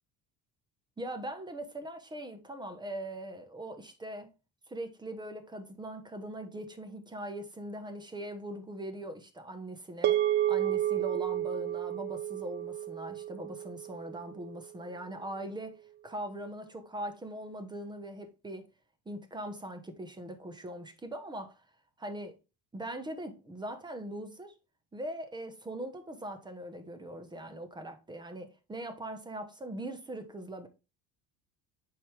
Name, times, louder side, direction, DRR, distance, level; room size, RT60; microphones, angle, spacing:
voice 1, 1.0-4.3 4.7-18.7 19.0-21.6 22.0-22.4 22.7-24.5 24.9-30.7, right 1 dB, 15° right, 1.1 m, -41 dB
sound 1, 10.0-14.5, right 12 dB, 35° right, 0.4 m, -31 dB
7.8 x 4.9 x 3.4 m
cardioid pair, 125°, 30 cm